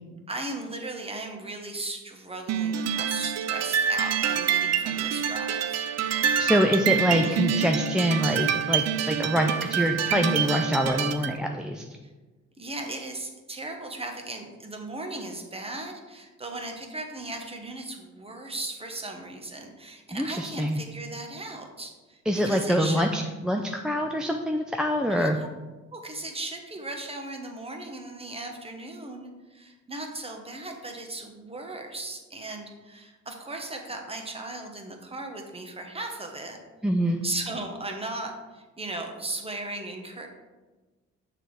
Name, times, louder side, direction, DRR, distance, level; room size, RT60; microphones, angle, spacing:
voice 1, 0.3-5.8 7.2-7.4 12.6-23.1 25.1-25.5 25.9-36.6 37.2-40.3, right 2 dB, 20° right, 3 dB, 1.1 m, -37 dB
sound 1, 2.5-11.4, right 8 dB, 60° right, 0.5 m, -26 dB
voice 2, 6.4-11.9 20.1-20.8 22.3-25.4 36.8-37.2, equal, ahead, 2 dB, 0.4 m, -25 dB
6.7 x 3.9 x 4.8 m, 1.3 s
cardioid pair, 90°, 30 cm